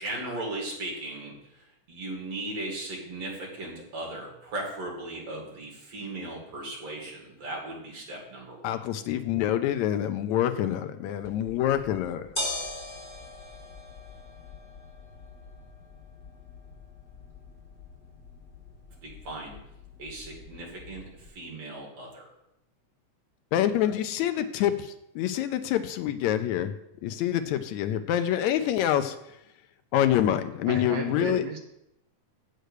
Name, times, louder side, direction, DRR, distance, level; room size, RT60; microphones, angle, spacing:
voice 1, 0.0-1.3 1.9-8.7 19.0-19.5 20.0-21.0 21.4-22.2, right 2 dB, 55° right, -2 dB, 3.6 m, -37 dB
voice 2, 8.6-12.3 23.5-24.7 25.2-26.7 27.0-29.2 29.9-31.4, left 11 dB, 80° left, 9 dB, 1.8 m, -26 dB
sound 1, 11.2-21.3, left 2 dB, 15° left, 3.8 m, -41 dB
voice 3, 30.6-31.6, right 5 dB, 70° right, 4 dB, 1.7 m, -34 dB
7.7 x 6.6 x 6.5 m, 0.82 s
omnidirectional pair, 3.6 m